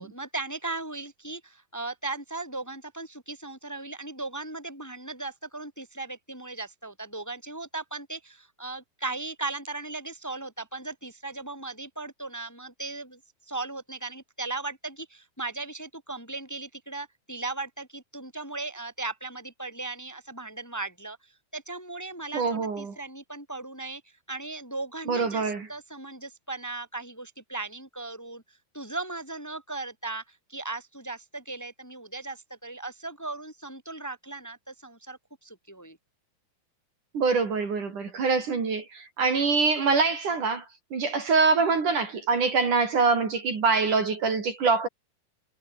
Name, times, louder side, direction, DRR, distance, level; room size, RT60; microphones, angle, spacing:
voice 1, 0.0-13.2 13.5-24.0 24.3-36.0, right 3 dB, 5° left, 4.6 m, -37 dB
voice 2, 22.3-22.9 25.1-25.7 37.1-40.6 40.9-44.9, right 4 dB, 50° right, 5.1 m, -24 dB
omnidirectional pair, 4.7 m